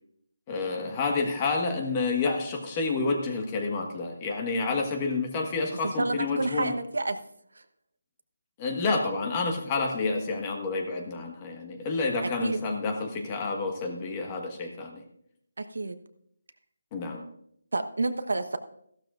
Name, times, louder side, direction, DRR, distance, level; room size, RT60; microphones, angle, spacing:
voice 1, 0.5-6.7 8.6-15.0 16.9-17.2, left 3 dB, 20° left, 3 dB, 1.5 m, -29 dB
voice 2, 5.8-7.2 7.5-7.6 12.2-12.6 15.6-16.0 17.7-18.6, right 2 dB, 85° right, 9 dB, 1.1 m, -29 dB
15.0 x 12.0 x 2.6 m, 0.72 s
figure-of-eight pair, 170°, 0 cm